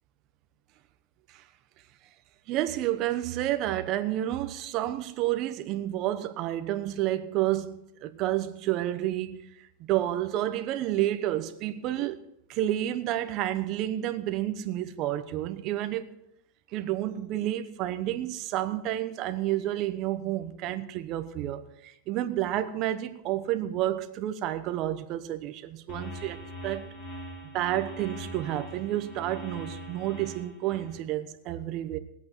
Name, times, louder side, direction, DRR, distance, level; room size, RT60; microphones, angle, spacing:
voice 1, 2.5-9.4 9.9-12.2 12.5-16.1 16.7-26.9 27.5-32.0, right 13 dB, 35° right, 1.0 m, -30 dB
sound 1, 25.9-31.0, equal, 40° left, 2.9 m, -42 dB
19.5 x 8.4 x 4.5 m
supercardioid pair, 160°, 0 cm